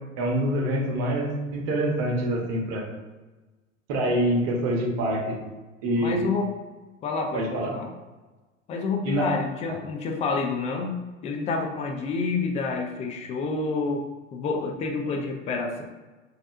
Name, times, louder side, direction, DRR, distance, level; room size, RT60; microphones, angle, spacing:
voice 1, 0.2-2.8 3.9-5.4 5.8-6.2 7.3-7.7 9.0-9.3, right 1 dB, 50° right, -1 dB, 1.1 m, -25 dB
voice 2, 6.0-6.5 7.0-7.9 8.7-14.1 14.3-15.8, left 4 dB, 20° left, 2 dB, 0.3 m, -28 dB
4.0 x 2.7 x 2.5 m, 1.2 s
figure-of-eight pair, 80°, 39 cm